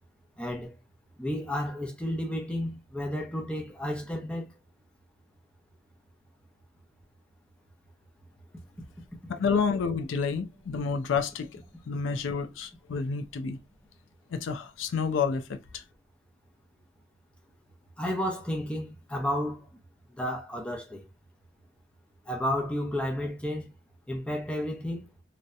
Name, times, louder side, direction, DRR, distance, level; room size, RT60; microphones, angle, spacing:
voice 1, 0.4-0.7 1.2-4.5 18.0-19.7 20.1-21.0 22.3-23.7 24.1-25.1, left 1 dB, 5° left, 0.4 m, -32 dB
voice 2, 9.3-11.6 11.9-13.6 14.3-15.8, left 5 dB, 85° left, 0.4 m, -29 dB
2.7 x 2.1 x 2.3 m
head